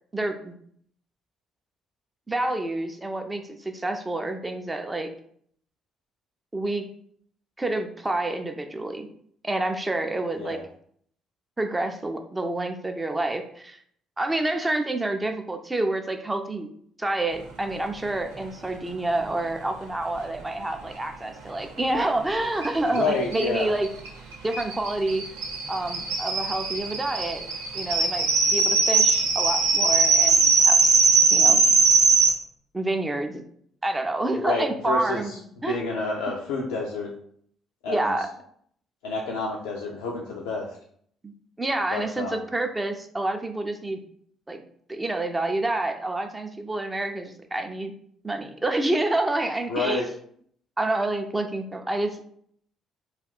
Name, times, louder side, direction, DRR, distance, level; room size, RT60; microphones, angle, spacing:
voice 1, 0.1-0.5 2.3-5.1 6.5-6.9 7.6-9.1 9.4-10.6 11.6-13.8 14.2-16.7 17.0-23.9 24.4-25.2 25.7-27.4 27.7-30.8 31.3-31.6 32.7-33.4 33.8-35.3 35.6-35.9 37.9-38.3 41.2-44.0 44.5-44.6 44.9-47.9 48.2-50.1 50.8-52.2, right 2 dB, 15° right, 5 dB, 0.4 m, -28 dB
sound 1, 22.6-22.7 22.9-23.0 23.3-32.3, right 4 dB, 75° right, 0.5 m, -20 dB
voice 2, 22.9-23.7 34.3-35.4 35.7-37.1 37.8-38.1 39.0-40.8 41.9-42.4 49.7-50.1, left 3 dB, 70° left, -1 dB, 0.4 m, -29 dB
2.3 x 2.3 x 3.5 m, 0.63 s
figure-of-eight pair, 45°, 0 cm